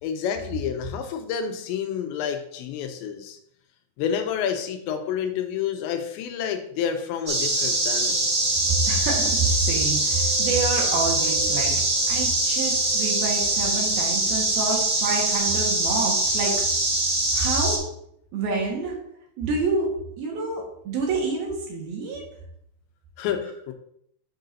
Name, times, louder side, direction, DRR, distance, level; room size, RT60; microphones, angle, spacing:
voice 1, 0.0-3.4 4.0-8.2 23.2-23.7, left 8 dB, 85° left, 6 dB, 2.9 m, -29 dB
sound 1, 7.3-17.8, right 2 dB, 30° right, 1.7 m, -23 dB
voice 2, 8.9-11.8 12.1-16.6 17.3-17.8 18.3-19.0 19.4-19.9 20.2-22.3, right 3 dB, 65° right, -2 dB, 2.9 m, -27 dB
7.9 x 7.4 x 2.7 m, 0.72 s
omnidirectional pair, 5.2 m